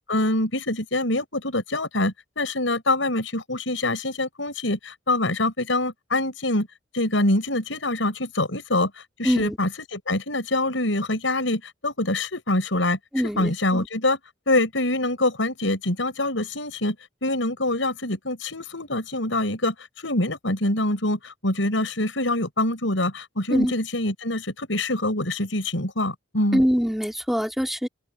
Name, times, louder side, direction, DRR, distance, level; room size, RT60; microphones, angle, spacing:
voice 1, 0.1-6.7 6.9-13.0 13.4-14.2 14.5-17.0 17.2-26.6, left 2 dB, 85° left, 6.6 m, -25 dB
voice 2, 9.2-9.6 13.1-13.9 23.5-23.7 26.5-27.9, equal, ahead, 3.4 m, -23 dB
open air
head